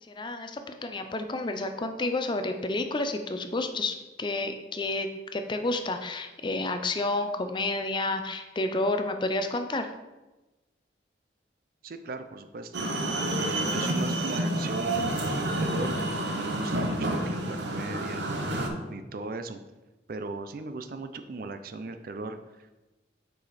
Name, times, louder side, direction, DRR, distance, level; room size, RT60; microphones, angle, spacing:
voice 1, 0.1-9.9, left 2 dB, 25° left, 7 dB, 0.4 m, -30 dB
voice 2, 11.8-12.9 13.3-16.0 16.3-18.5 18.9-19.6 20.1-22.8, right 3 dB, 55° right, 8 dB, 0.4 m, -37 dB
sound 1, 12.7-18.7, right 1 dB, 70° right, 0.9 m, -29 dB
6.5 x 4.8 x 4.2 m, 1.1 s
head